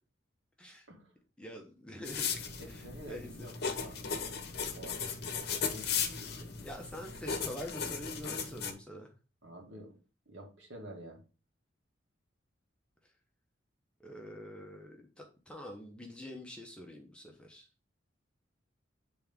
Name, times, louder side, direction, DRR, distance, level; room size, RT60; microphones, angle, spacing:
voice 1, 1.4-2.3 2.7-3.5 6.6-9.1 14.0-17.7, equal, 5° left, 1 dB, 0.9 m, -45 dB
sound 1, 2.0-8.7, left 6 dB, 55° left, 0.9 m, -37 dB
voice 2, 2.6-4.4 4.7-5.9 9.4-10.0 10.3-11.2, right 1 dB, 70° right, 1 dB, 2.0 m, -49 dB
8.6 x 3.5 x 3.6 m, 0.34 s
head